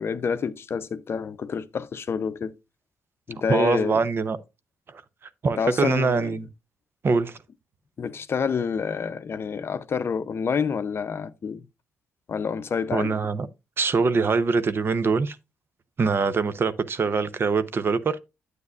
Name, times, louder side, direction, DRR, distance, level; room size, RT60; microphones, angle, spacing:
voice 1, 0.0-2.5 3.3-4.0 5.6-6.3 8.0-11.6 12.3-13.2, left 6 dB, 50° left, 0.6 m, -28 dB
voice 2, 3.5-4.4 5.4-6.5 7.0-7.4 12.9-13.5 13.8-15.4 16.0-18.2, right 4 dB, 45° right, 0.6 m, -23 dB
9.4 x 8.1 x 2.4 m
supercardioid pair, 60°, 5 cm